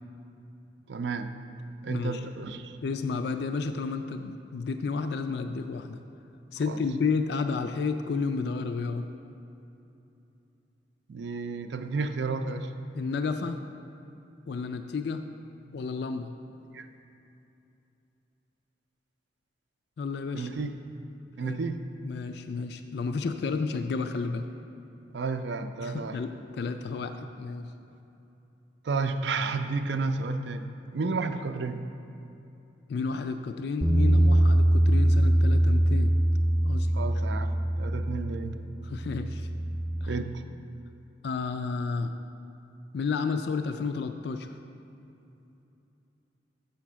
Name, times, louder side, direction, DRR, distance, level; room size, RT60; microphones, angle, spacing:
voice 1, 0.9-1.3 1.8-2.8 6.7-6.8 11.1-12.7 16.7-16.9 20.3-20.7 21.4-21.8 25.1-26.2 28.8-31.8 36.9-38.6 40.0-40.4, right 4 dB, 70° right, 8 dB, 0.5 m, -32 dB
voice 2, 1.9-2.2 2.8-6.0 6.5-9.1 12.9-13.7 14.5-15.2 15.7-16.3 20.0-20.5 21.4-21.6 22.0-24.5 25.8-27.7 32.9-36.1 36.6-36.9 38.8-39.5 40.0-40.1 41.2-42.1 42.9-44.6, left 4 dB, 60° left, 7 dB, 0.3 m, -31 dB
Bass guitar, 33.8-40.1, right 1 dB, 5° right, 0.6 m, -23 dB
6.7 x 5.8 x 7.3 m, 2.8 s
head